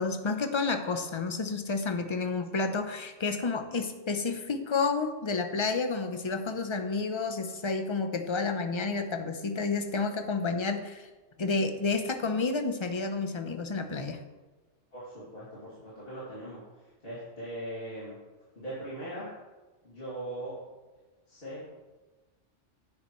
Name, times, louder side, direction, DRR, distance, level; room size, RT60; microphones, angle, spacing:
voice 1, 0.0-11.1 11.4-14.2, left 4 dB, 30° left, 7 dB, 0.6 m, -30 dB
voice 2, 14.9-18.2 18.5-19.3 19.8-20.5 21.3-21.6, right 1 dB, 50° left, -11 dB, 3.0 m, -40 dB
10.0 x 9.8 x 3.1 m, 1.2 s
omnidirectional pair, 1.3 m